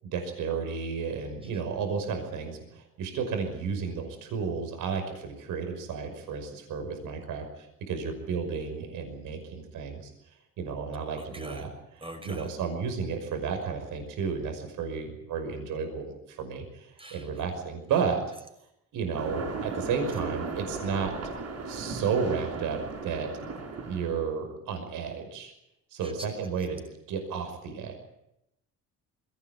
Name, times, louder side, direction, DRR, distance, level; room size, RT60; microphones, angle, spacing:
voice 1, 0.0-10.1 10.6-18.2 18.9-21.1 21.7-23.3 23.9-25.5 25.9-26.8 27.1-28.0, right 6 dB, 70° right, 5 dB, 5.7 m, -32 dB
voice 2, 11.2-11.7 12.0-12.5 17.0-17.3 26.0-26.1, right 1 dB, 15° right, 5 dB, 5.8 m, -43 dB
sound 1, 19.1-24.2, right 4 dB, 50° right, 6.5 m, -36 dB
21.5 x 18.0 x 9.1 m, 0.84 s
cardioid pair, 110°, 33 cm